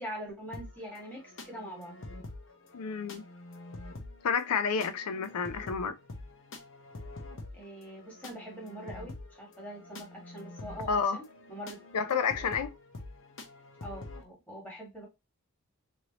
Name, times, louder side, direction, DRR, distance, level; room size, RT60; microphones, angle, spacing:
voice 1, 0.0-2.0 7.5-11.8 13.8-15.1, equal, 5° left, 1.3 m, -43 dB
sound 1, 0.5-14.2, left 2 dB, 55° left, 0.7 m, -46 dB
voice 2, 2.7-3.2 4.2-6.0 10.9-11.2 11.9-12.8, left 6 dB, 90° left, 0.4 m, -30 dB
3.1 x 2.7 x 2.8 m
head